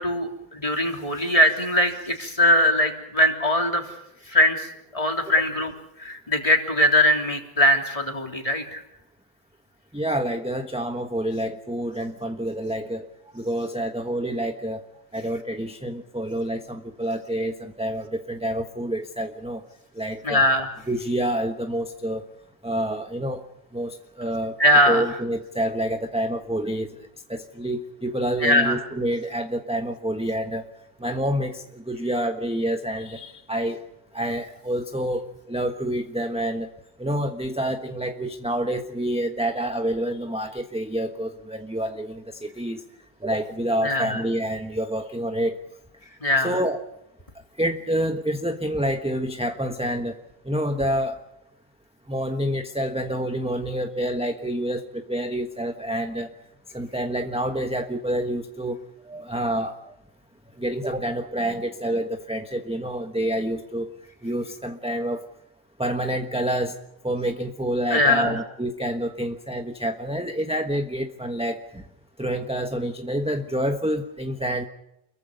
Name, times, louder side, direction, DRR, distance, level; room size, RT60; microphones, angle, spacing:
voice 1, 0.0-3.8 4.3-5.7 6.0-8.8 20.2-20.7 24.6-25.0 28.4-28.8 43.8-44.2 46.2-46.6 67.9-68.4, left 1 dB, 20° left, 3 dB, 3.4 m, -21 dB
voice 2, 9.9-13.1 13.3-14.8 15.1-19.6 19.9-20.4 20.9-22.2 22.6-23.4 23.7-24.6 24.9-30.7 31.0-33.8 34.1-36.7 37.0-42.8 43.2-45.6 46.4-46.8 47.6-51.2 52.1-56.3 56.7-58.8 59.0-59.9 60.6-63.9 64.2-65.3 65.8-66.8 67.0-71.8 72.2-74.6, right 1 dB, 5° right, 6 dB, 1.1 m, -28 dB
29.5 x 22.5 x 5.4 m, 0.86 s
omnidirectional pair, 1.6 m